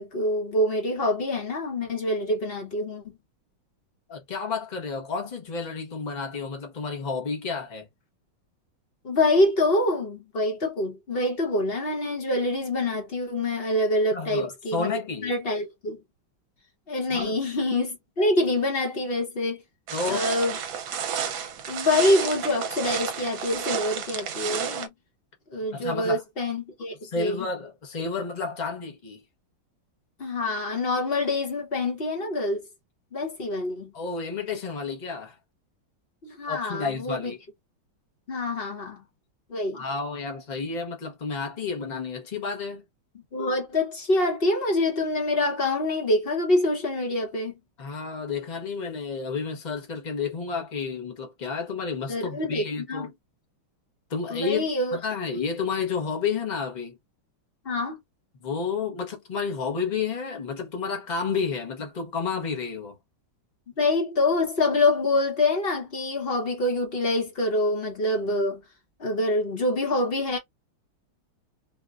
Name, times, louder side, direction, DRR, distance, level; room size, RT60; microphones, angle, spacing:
voice 1, 0.0-3.1 9.0-16.0 16.9-19.6 20.0-20.6 21.7-24.9 25.5-27.5 30.2-32.6 33.1-33.9 36.2-37.3 38.3-39.0 39.5-39.8 43.3-47.5 52.1-53.1 54.3-55.0 57.6-58.0 63.8-68.6 69.0-70.4, left 2 dB, 45° left, 0.8 m, -26 dB
voice 2, 4.1-7.9 14.1-15.3 17.1-17.4 19.9-20.3 25.7-26.2 27.0-29.2 33.9-35.4 36.5-37.4 39.7-42.8 47.8-53.1 54.1-57.0 58.4-63.0, left 5 dB, 70° left, 0.4 m, -31 dB
sound 1, 19.9-24.9, right 8 dB, 75° right, 1.4 m, -31 dB
4.2 x 2.1 x 2.4 m
omnidirectional pair, 2.3 m